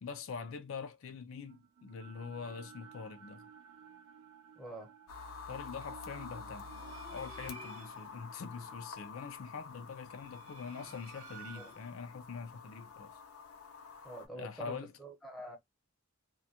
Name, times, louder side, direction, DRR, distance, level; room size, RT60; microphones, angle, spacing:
voice 1, 0.0-3.5 5.5-6.7 7.1-13.2 14.3-14.9, left 5 dB, 65° left, 0.4 m, -44 dB
sound 1, 1.5-11.6, right 7 dB, 60° right, 0.4 m, -58 dB
voice 2, 4.6-4.9 11.5-11.7 14.0-15.6, right 1 dB, ahead, 0.8 m, -46 dB
sound 2, 5.1-14.3, left 5 dB, 90° left, 0.7 m, -49 dB
sound 3, 6.6-8.2 10.0-12.1, right 3 dB, 85° right, 0.9 m, -52 dB
2.3 x 2.1 x 2.7 m
head